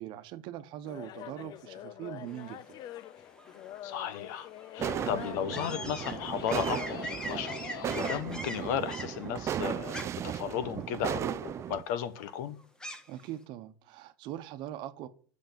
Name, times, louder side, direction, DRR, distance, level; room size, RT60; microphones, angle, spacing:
voice 1, 0.0-2.8 13.1-15.1, right 12 dB, 55° right, 1.0 m, -41 dB
sound 1, 0.8-8.2, left 13 dB, 45° left, 0.5 m, -44 dB
sound 2, 2.3-13.3, equal, 5° left, 1.3 m, -45 dB
voice 2, 3.8-4.5 4.7-12.6, left 9 dB, 70° left, 1.3 m, -35 dB
sound 3, 4.8-11.8, right 10 dB, 30° right, 0.4 m, -36 dB
8.1 x 6.3 x 7.5 m
supercardioid pair, 125°, 10 cm